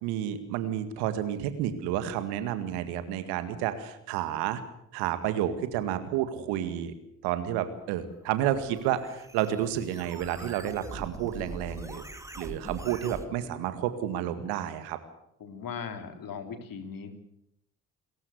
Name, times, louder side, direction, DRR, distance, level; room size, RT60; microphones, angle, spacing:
voice 1, 0.0-4.6 4.9-6.9 7.2-12.0 12.4-15.0, right 11 dB, 75° right, 11 dB, 2.1 m, -30 dB
sound 1, 8.3-13.3, right 1 dB, 5° right, 2.7 m, -43 dB
voice 2, 15.4-17.1, left 6 dB, 55° left, 7 dB, 3.6 m, -38 dB
29.0 x 14.0 x 8.3 m, 0.78 s
hypercardioid pair, 45°, 40 cm